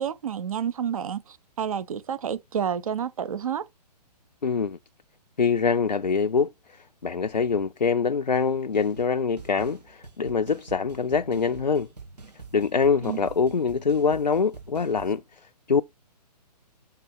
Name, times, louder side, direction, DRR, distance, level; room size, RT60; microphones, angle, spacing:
voice 1, 0.0-3.6 13.0-13.3, right 8 dB, 55° right, 1.0 m, -30 dB
voice 2, 4.4-4.8 5.4-6.5 7.0-11.9 12.5-15.2 15.7-15.8, left 5 dB, 90° left, 0.5 m, -24 dB
sound 1, 8.3-8.5 8.7-9.1 9.4-15.2, right 4 dB, 70° right, 2.8 m, -45 dB
6.6 x 3.9 x 4.6 m
figure-of-eight pair, 130°, 21 cm